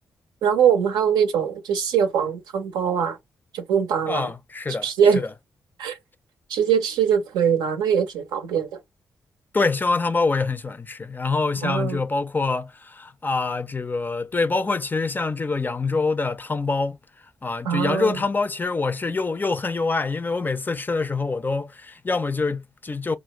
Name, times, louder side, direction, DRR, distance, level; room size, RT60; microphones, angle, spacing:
voice 1, 0.4-3.2 3.5-4.3 4.8-5.2 5.8-6.0 6.5-8.8 11.6-12.0 17.6-18.2, right 7 dB, 85° right, 0.5 m, -22 dB
voice 2, 4.1-4.9 5.1-5.3 9.5-17.0 17.4-23.2, left 3 dB, 25° left, 0.4 m, -25 dB
2.4 x 2.0 x 3.0 m
supercardioid pair, 50°, 7 cm